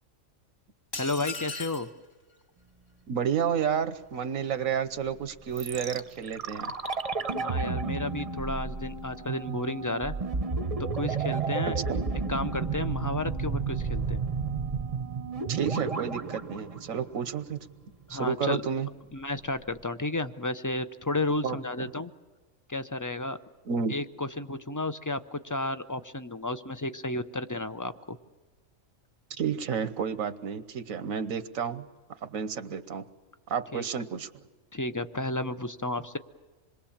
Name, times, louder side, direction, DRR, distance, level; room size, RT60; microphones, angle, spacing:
sound 1, 0.9-1.9, left 3 dB, 45° left, 1.7 m, -37 dB
voice 1, 1.0-1.9 7.4-10.1 10.9-11.8 12.3-14.2 18.1-18.6 19.1-22.1 22.7-23.4 23.9-28.2 33.7-33.8 34.7-36.2, left 2 dB, 25° left, 11 dB, 0.4 m, -32 dB
voice 2, 3.1-6.7 11.9-12.0 15.5-17.7 18.1-18.9 21.4-21.9 23.6-23.9 29.4-31.8 32.2-33.0 33.5-34.3, right 7 dB, 85° right, 12 dB, 1.4 m, -31 dB
sound 2, 5.6-17.6 17.8-17.9, right 4 dB, 30° right, 0.8 m, -32 dB
27.0 x 22.0 x 7.3 m, 1.3 s
omnidirectional pair, 1.4 m